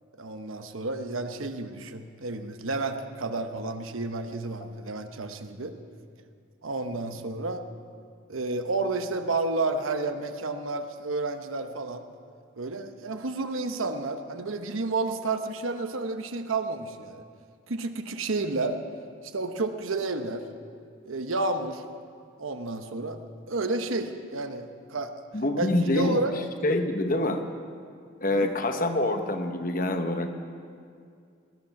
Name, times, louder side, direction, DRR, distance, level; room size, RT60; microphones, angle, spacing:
voice 1, 0.2-5.8 6.6-7.7 8.3-12.0 12.6-17.2 17.7-18.8 19.3-20.4 21.1-21.8 22.4-23.2 23.5-25.1 25.6-26.4 28.3-28.5, right 3 dB, 85° right, 7 dB, 1.0 m, -31 dB
voice 2, 25.3-26.2 26.6-27.4 28.2-30.3, left 1 dB, 45° left, 6 dB, 1.0 m, -26 dB
19.5 x 11.5 x 5.9 m, 2.3 s
head